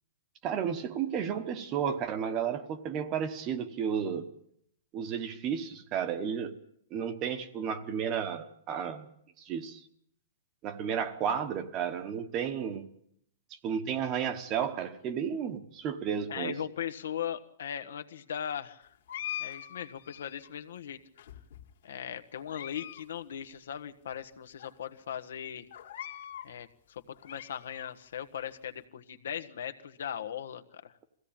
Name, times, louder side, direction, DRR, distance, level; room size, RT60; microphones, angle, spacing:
voice 1, 0.4-4.3 4.9-6.5 6.9-9.1 9.4-9.8 10.6-12.8 13.6-16.6, right 7 dB, 20° right, 1.0 m, -32 dB
voice 2, 16.3-18.9 19.4-21.0 21.8-25.7 26.4-30.9, left 9 dB, 80° left, 1.4 m, -39 dB
sound 1, 19.1-20.5 21.2-21.8 22.3-23.0 23.3-23.4 24.1-24.2 24.6-24.7 25.7-26.5 27.0-27.9, left 11 dB, 55° left, 2.2 m, -42 dB
22.5 x 16.0 x 8.9 m
hypercardioid pair, 175°, 0 cm